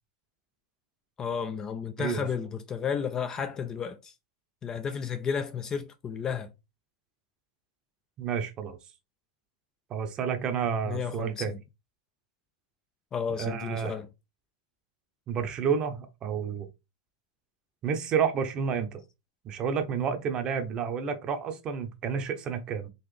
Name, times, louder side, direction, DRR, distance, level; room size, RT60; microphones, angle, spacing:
voice 1, 1.2-4.1 4.6-6.5 10.8-11.6 13.1-14.1, left 7 dB, 20° left, 0.3 m, -32 dB
voice 2, 8.2-8.8 9.9-11.5 13.4-14.0 15.3-16.7 17.8-19.0 19.4-22.9, right 7 dB, 30° right, 0.7 m, -30 dB
3.9 x 2.4 x 3.3 m
supercardioid pair, 135°, 3 cm